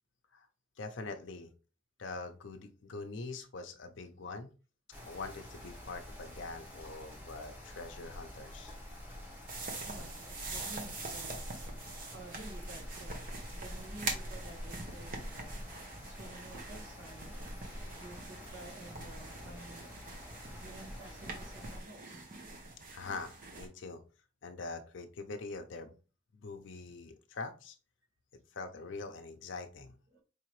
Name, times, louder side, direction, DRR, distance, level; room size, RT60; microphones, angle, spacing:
voice 1, 0.8-1.5 2.0-4.5 5.0-8.8 22.9-24.0 24.4-25.9 26.3-27.8 28.5-29.9, left 3 dB, 60° left, 6 dB, 0.6 m, -43 dB
sound 1, 4.9-21.8, left 1 dB, 10° right, 1.1 m, -49 dB
sound 2, 9.5-23.7, right 2 dB, 40° right, 0.8 m, -43 dB
voice 2, 9.8-11.5 12.1-13.2 13.5-15.5 16.1-17.4 18.0-20.0 20.6-22.3 30.1-30.2, right 2 dB, 65° right, 1 dB, 1.2 m, -51 dB
4.8 x 2.8 x 3.0 m, 0.34 s
head